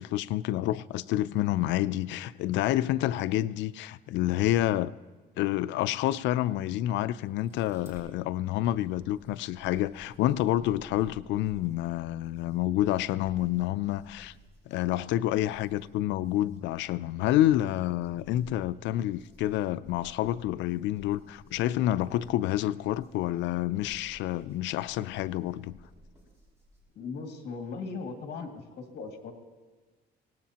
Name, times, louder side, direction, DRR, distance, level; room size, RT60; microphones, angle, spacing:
voice 1, 0.0-4.9 5.4-14.3 14.7-25.8, left 14 dB, 85° left, 0.5 m, -28 dB
sound 1, 7.2-8.1 8.6-26.8, equal, 15° right, 5.8 m, -56 dB
voice 2, 27.0-28.5 28.8-29.3, left 4 dB, 65° left, 2.1 m, -38 dB
24.5 x 18.5 x 2.9 m
cardioid pair, 155°, 18 cm